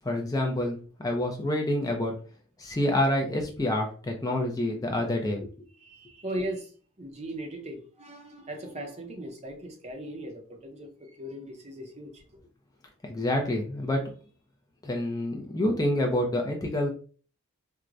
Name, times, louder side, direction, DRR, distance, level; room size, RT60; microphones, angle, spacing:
voice 1, 0.0-2.2 2.6-5.5 13.0-14.0 14.8-16.9, left 1 dB, 15° left, 0.4 m, -27 dB
voice 2, 5.7-6.7 7.0-12.4, right 1 dB, 30° right, 0.6 m, -38 dB
4.5 x 2.1 x 2.5 m
head